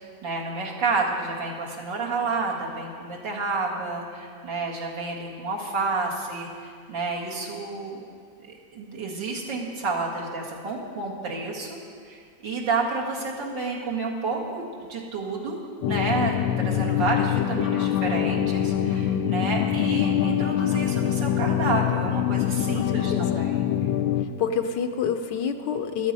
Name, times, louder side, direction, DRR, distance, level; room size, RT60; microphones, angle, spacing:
voice 1, 0.2-8.0 8.4-11.8 12.1-15.6 15.9-16.3 16.6-23.6, right 3 dB, 70° right, -3 dB, 2.6 m, -30 dB
sound 1, 15.8-24.2, left 10 dB, 85° left, 1.4 m, -24 dB
voice 2, 22.8-23.5 24.2-26.1, left 7 dB, 70° left, 7 dB, 1.3 m, -28 dB
13.5 x 12.5 x 5.4 m, 2.1 s
omnidirectional pair, 2.1 m